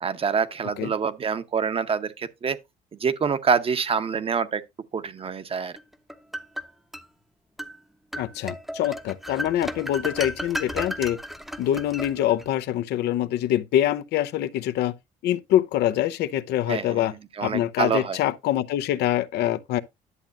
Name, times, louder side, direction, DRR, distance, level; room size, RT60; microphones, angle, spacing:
voice 1, 0.0-2.6 2.9-4.6 4.9-5.7 16.7-17.0 17.4-18.2, right 6 dB, 35° right, 0.8 m, -26 dB
sound 1, 5.8-7.1 7.6-7.8 8.1-12.6, equal, ahead, 0.8 m, -34 dB
voice 2, 8.2-11.2 11.6-14.9 15.2-17.1 17.4-19.8, left 12 dB, 75° left, 0.7 m, -25 dB
11.0 x 7.3 x 2.5 m
cardioid pair, 110°, 17 cm